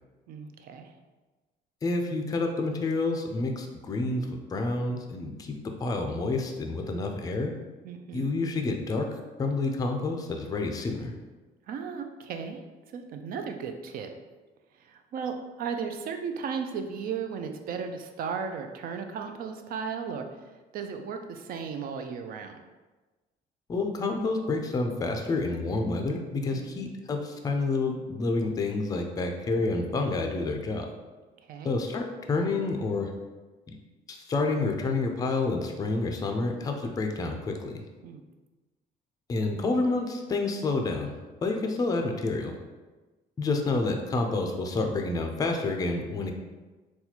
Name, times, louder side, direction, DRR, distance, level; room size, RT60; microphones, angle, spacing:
voice 1, 0.3-0.9 7.8-8.3 11.7-12.6 12.9-14.1 14.8-20.3 20.7-22.6 26.5-26.8 31.4-31.8 38.0-38.2, right 6 dB, 60° right, 6 dB, 0.4 m, -35 dB
voice 2, 1.8-7.5 8.1-9.1 9.4-11.1 23.7-30.9 31.6-33.1 34.1-37.8 39.3-41.1 41.4-42.6 43.4-46.3, left 3 dB, 20° left, 3 dB, 0.4 m, -29 dB
4.0 x 2.3 x 2.8 m, 1.2 s
cardioid pair, 110°, 17 cm